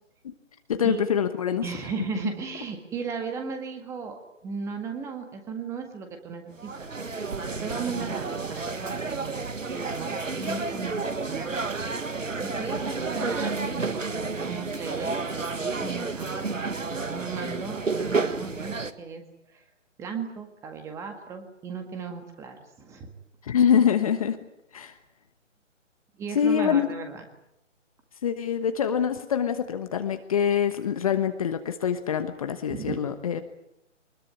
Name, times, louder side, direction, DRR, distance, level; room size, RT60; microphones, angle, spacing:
voice 1, 0.7-1.7 23.4-24.4 24.7-24.9 26.3-26.9 28.2-33.4, left 8 dB, 30° left, 9 dB, 1.2 m, -25 dB
voice 2, 1.6-4.1 4.4-7.3 7.6-11.6 12.4-15.2 15.6-16.5 17.1-19.2 19.5-19.6 20.0-23.1 26.2-27.2 32.7-33.0, right 5 dB, 10° right, 6 dB, 1.8 m, -36 dB
sound 1, 6.6-18.9, right 4 dB, 85° right, 1.9 m, -31 dB
24.0 x 21.0 x 9.6 m, 0.83 s
figure-of-eight pair, 155°, 38 cm